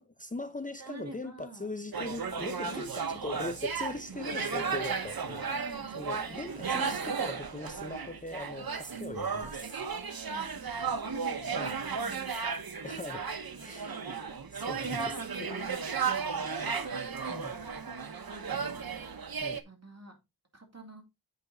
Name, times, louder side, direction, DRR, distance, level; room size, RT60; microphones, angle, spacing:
voice 1, 0.0-5.6 6.0-9.8 11.5-11.8 12.8-13.3 13.6-14.0 14.5-15.5 17.3-17.6 19.3-19.6, left 2 dB, 25° left, 0.6 m, -40 dB
voice 2, 0.8-1.7 2.6-3.0 5.4-6.4 8.9-9.3 10.3-12.8 13.7-14.3 14.6-17.0 18.2-19.0 19.4-20.1 20.5-21.0, right 2 dB, 45° right, 2.7 m, -48 dB
sound 1, 1.9-19.6, right 5 dB, 85° right, 0.9 m, -34 dB
8.3 x 5.2 x 3.9 m
wide cardioid pair, 60°, 35 cm